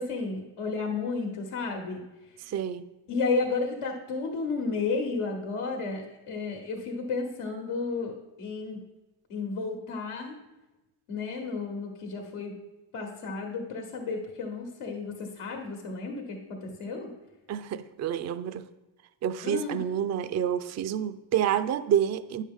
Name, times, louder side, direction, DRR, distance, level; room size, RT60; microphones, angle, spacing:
voice 1, 0.0-2.0 3.1-8.8 9.3-10.4 11.1-12.5 12.9-17.1 19.4-19.8, left 4 dB, 80° left, 1.2 m, -32 dB
voice 2, 2.4-2.9 17.5-18.6 19.2-22.4, right 9 dB, 35° right, 0.4 m, -28 dB
9.5 x 6.4 x 3.6 m
supercardioid pair, 70°, 50 cm